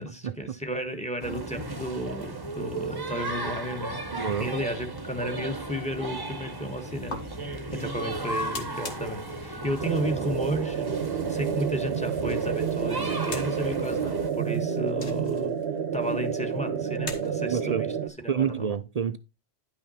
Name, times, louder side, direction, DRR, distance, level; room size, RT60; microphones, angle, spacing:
voice 1, 0.0-4.0 4.4-15.6 15.9-18.7, equal, 5° left, 1.4 m, -33 dB
sound 1, 1.2-14.3, right 2 dB, 20° right, 1.0 m, -35 dB
voice 2, 4.1-4.5 7.7-7.8 17.5-17.9 18.3-19.2, right 7 dB, 50° right, 0.5 m, -28 dB
sound 2, 5.4-17.7, left 3 dB, 85° left, 1.9 m, -46 dB
sound 3, 9.8-18.1, right 7 dB, 70° right, 1.1 m, -29 dB
10.5 x 5.8 x 4.2 m
omnidirectional pair, 1.1 m